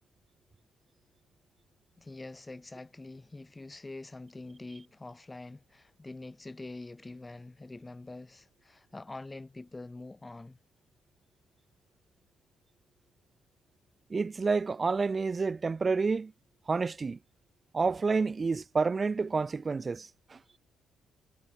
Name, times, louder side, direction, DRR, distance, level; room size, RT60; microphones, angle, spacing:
voice 1, 2.0-10.6, left 2 dB, 20° left, 5.8 m, -45 dB
voice 2, 14.1-16.3 16.7-17.2 17.7-20.4, right 4 dB, 30° right, 1.5 m, -29 dB
cardioid pair, 90°, 0 cm